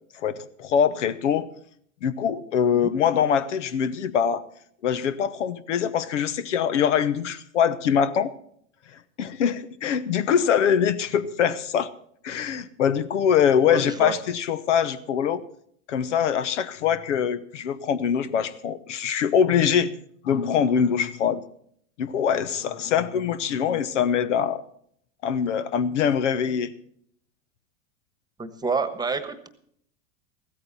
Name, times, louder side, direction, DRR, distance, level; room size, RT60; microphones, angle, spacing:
voice 1, 0.2-1.5 2.0-4.4 4.8-8.3 9.2-11.9 12.2-15.4 15.9-19.9 20.2-21.4 22.0-24.6 25.2-26.7, left 8 dB, 85° left, 16 dB, 1.0 m, -23 dB
voice 2, 13.6-14.1 28.4-29.5, right 4 dB, 10° right, 11 dB, 1.2 m, -28 dB
15.0 x 13.5 x 4.1 m, 0.66 s
hypercardioid pair, 120°, 35 cm